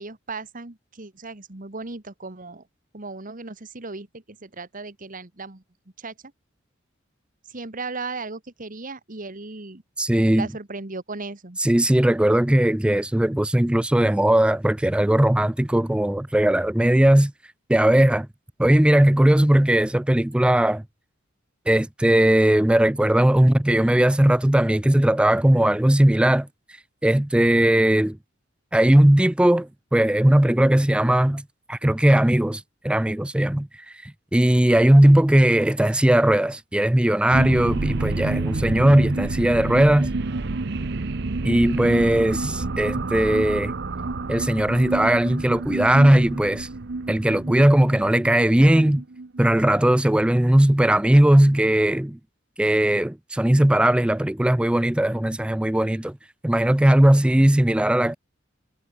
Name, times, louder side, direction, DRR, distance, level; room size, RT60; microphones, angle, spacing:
voice 1, 0.0-2.7 2.9-5.6 6.0-6.1 7.4-9.8 10.3-11.6, right 3 dB, 45° right, 1.6 m, -36 dB
voice 2, 10.0-10.5 11.6-17.3 17.7-18.3 18.6-20.8 21.7-26.5 27.0-28.2 28.7-33.7 34.0-40.1 41.4-43.7 44.3-46.7 47.1-49.0 49.4-52.2 52.6-56.2 56.4-58.2, right 1 dB, 5° right, 0.3 m, -18 dB
sound 1, 37.3-50.2, right 3 dB, 60° right, 0.8 m, -29 dB
head